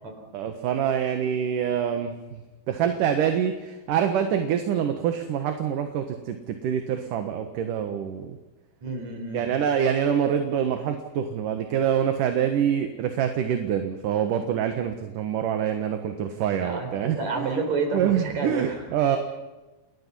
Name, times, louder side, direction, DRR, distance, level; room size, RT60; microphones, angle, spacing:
voice 1, 0.3-2.4 2.7-8.4 9.3-17.5 17.9-19.2, right 8 dB, 70° right, 6 dB, 2.9 m, -25 dB
voice 2, 8.8-9.4 16.6-18.8, right 4 dB, 50° right, 4 dB, 5.7 m, -30 dB
29.5 x 20.5 x 5.7 m, 1.1 s
omnidirectional pair, 4.2 m